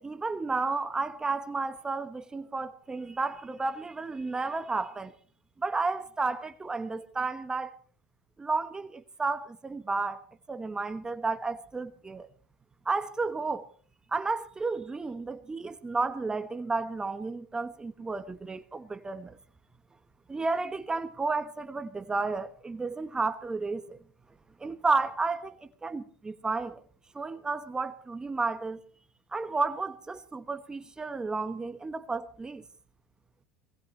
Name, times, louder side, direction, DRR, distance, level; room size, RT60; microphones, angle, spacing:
voice 1, 0.0-5.1 5.6-7.8 8.4-12.3 12.8-13.7 14.1-19.4 20.3-24.0 24.6-26.8 27.1-28.8 29.3-32.6, right 3 dB, 15° right, 1.2 m, -32 dB
22.5 x 19.5 x 3.2 m
hypercardioid pair, 90°, 4 cm